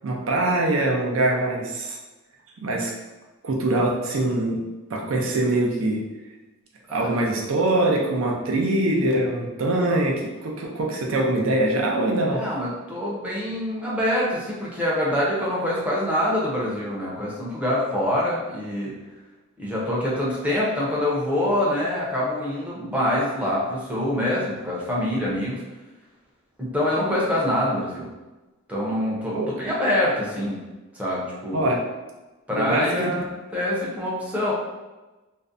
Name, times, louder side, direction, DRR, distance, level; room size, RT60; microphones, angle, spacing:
voice 1, 0.0-2.0 2.6-2.9 3.4-4.6 4.9-6.0 6.9-12.4 29.3-29.5 31.5-31.8 32.5-33.1, right 2 dB, 70° right, 0 dB, 0.5 m, -23 dB
voice 2, 6.9-7.3 12.3-18.9 19.6-25.6 26.6-28.1 28.7-30.6 30.9-31.7 32.5-34.5, left 1 dB, 5° right, -6 dB, 0.5 m, -25 dB
2.5 x 2.1 x 2.5 m, 1.1 s
head